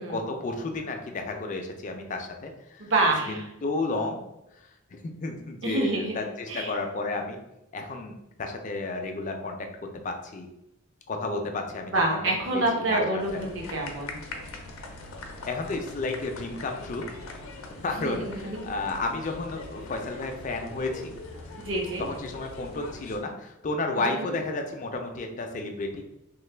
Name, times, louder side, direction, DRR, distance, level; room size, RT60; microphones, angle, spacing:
voice 1, 0.0-2.9 3.3-4.2 4.9-7.4 7.7-9.6 10.0-10.5 11.1-12.2 12.5-13.7 15.2-17.0 17.8-21.1 22.0-26.0, left 3 dB, 40° left, 4 dB, 0.4 m, -32 dB
voice 2, 2.8-3.4 5.6-6.1 6.5-6.7 11.9-14.2 18.0-18.7 21.6-22.1 24.0-24.3, right 2 dB, 70° right, -1 dB, 0.8 m, -27 dB
sound 1, 13.2-23.2, left 2 dB, 85° left, 0.5 m, -42 dB
3.1 x 2.1 x 3.2 m, 0.87 s
head